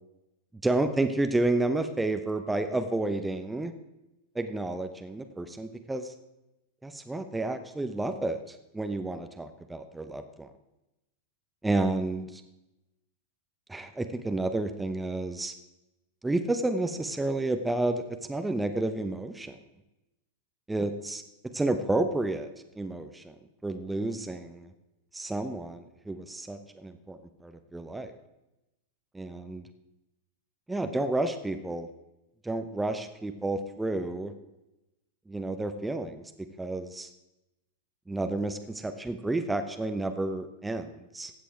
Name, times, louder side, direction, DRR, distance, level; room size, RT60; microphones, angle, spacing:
voice 1, 0.6-3.7 4.3-6.1 6.8-10.5 11.6-12.4 13.7-15.5 16.2-19.6 20.7-21.2 21.5-22.5 22.7-23.3 23.6-24.7 25.1-28.1 29.1-29.6 30.7-31.9 32.4-34.3 35.3-36.2 36.6-37.1 38.1-41.3, right 2 dB, 5° right, 8 dB, 0.8 m, -30 dB
15.5 x 8.3 x 4.6 m, 0.95 s
figure-of-eight pair, 90°, 0 cm